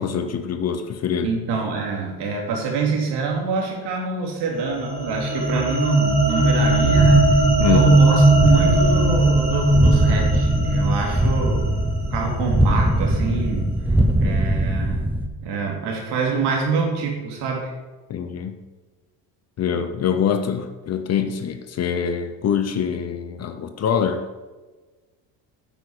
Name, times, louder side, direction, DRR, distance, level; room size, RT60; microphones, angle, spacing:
voice 1, 0.0-1.3 7.6-8.0 18.1-18.6 19.6-24.3, left 7 dB, 35° left, 8 dB, 0.6 m, -24 dB
voice 2, 1.2-11.7 12.1-13.7 14.2-15.0 15.4-17.7, right 5 dB, 60° right, 0 dB, 2.9 m, -26 dB
sound 1, 4.6-13.1, right 2 dB, 20° right, 3.3 m, -19 dB
sound 2, 6.6-15.3, right 1 dB, 5° right, 0.4 m, -22 dB
9.1 x 8.4 x 4.9 m, 1.3 s
cardioid pair, 160°, 45 cm